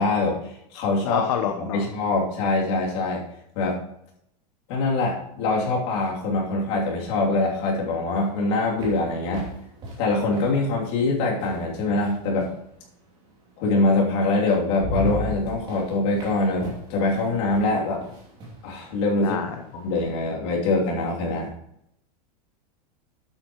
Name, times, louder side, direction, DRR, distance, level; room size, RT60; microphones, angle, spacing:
voice 1, 0.0-3.2 3.5-3.8 4.7-9.5 10.0-12.5 13.6-18.0 18.6-19.4 19.7-21.5, left 2 dB, 40° left, -2 dB, 3.0 m, -24 dB
voice 2, 1.0-1.8 19.2-19.5, left 9 dB, 55° left, 6 dB, 0.9 m, -27 dB
sound 1, 8.1-12.7 13.9-14.0 14.4-20.1, equal, 25° right, 3.0 m, -36 dB
12.0 x 8.5 x 3.1 m, 0.76 s
supercardioid pair, 175°, 20 cm